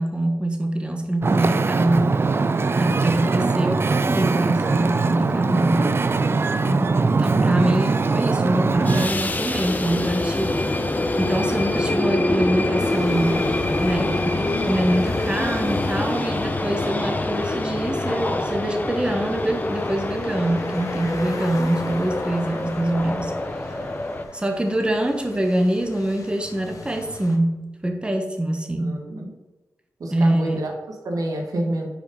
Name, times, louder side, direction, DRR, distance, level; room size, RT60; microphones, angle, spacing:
voice 1, 0.0-2.2 2.8-6.0 7.2-10.6 11.2-13.5 13.8-23.3 23.6-23.8 24.3-29.0 30.1-30.6, right 1 dB, 15° right, 4 dB, 0.9 m, -24 dB
Wind / Ocean, 1.2-9.1, right 4 dB, 40° right, 0.4 m, -21 dB
voice 2, 6.6-7.0 28.8-29.3 30.0-31.9, right 1 dB, 80° right, 2 dB, 1.3 m, -28 dB
sound 1, 8.7-24.2, left 2 dB, 30° left, 0.7 m, -25 dB
sound 2, 12.8-27.4, left 3 dB, 70° left, 0.9 m, -41 dB
5.0 x 5.0 x 5.2 m, 1.1 s
cardioid pair, 60°, 6 cm